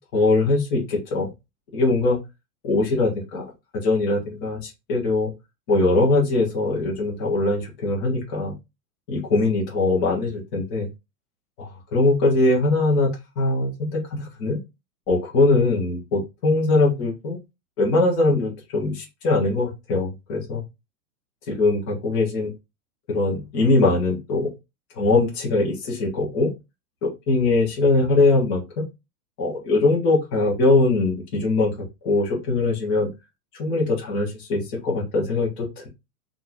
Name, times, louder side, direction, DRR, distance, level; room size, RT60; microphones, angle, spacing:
voice 1, 0.1-1.3 1.7-2.2 2.6-3.4 3.7-5.3 5.7-8.5 9.1-10.9 11.6-13.1 13.4-14.6 15.1-17.4 17.8-20.6 21.5-22.5 23.1-24.5 25.0-26.5 27.0-28.8 29.4-31.7 32.0-33.1 33.6-35.9, left 2 dB, 15° left, -2 dB, 0.6 m, -21 dB
3.7 x 2.4 x 2.7 m, 0.24 s
supercardioid pair, 170°, 46 cm